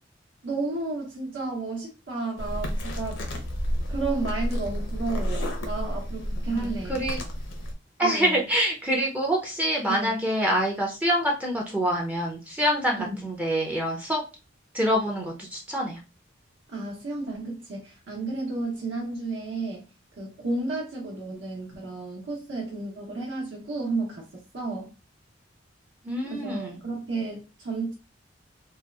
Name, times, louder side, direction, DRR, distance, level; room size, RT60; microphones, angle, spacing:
voice 1, 0.4-3.2 3.9-7.0 8.0-8.4 9.9-10.2 13.0-13.3 16.7-19.9 20.2-24.9 26.3-27.9, right 3 dB, 75° right, -3 dB, 0.8 m, -32 dB
sound 1, 2.4-7.7, equal, 80° left, 0.6 m, -30 dB
voice 2, 6.6-7.2 8.0-14.2 14.7-16.0 26.0-26.8, equal, 10° right, -1 dB, 0.4 m, -26 dB
2.7 x 2.2 x 2.2 m, 0.30 s
head